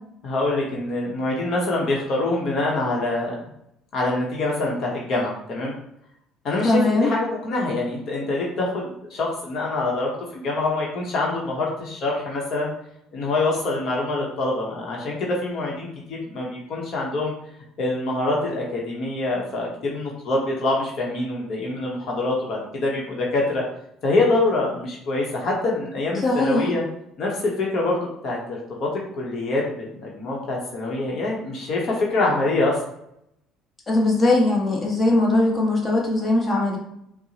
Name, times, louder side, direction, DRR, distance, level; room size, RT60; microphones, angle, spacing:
voice 1, 0.2-3.3 3.9-5.7 6.4-12.7 13.1-17.3 17.8-23.6 24.0-26.8 27.2-32.8, left 2 dB, 55° left, -2 dB, 0.9 m, -25 dB
voice 2, 6.6-7.1 26.2-26.7 33.9-36.8, left 2 dB, 25° left, -3 dB, 1.0 m, -20 dB
4.4 x 2.0 x 2.8 m, 0.75 s
supercardioid pair, 100°, 0 cm